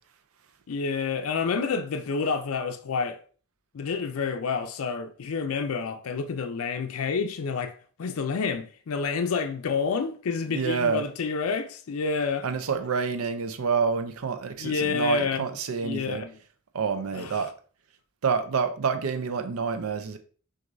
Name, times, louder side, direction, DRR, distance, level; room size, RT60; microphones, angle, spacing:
voice 1, 0.7-3.2 3.7-12.5 14.6-15.4 15.8-16.4 17.1-17.5, left 5 dB, 80° left, 0.4 m, -29 dB
voice 2, 10.5-11.0 12.4-16.2 16.7-17.5 18.2-20.2, right 5 dB, 85° right, 0.5 m, -28 dB
6.0 x 2.6 x 2.6 m
head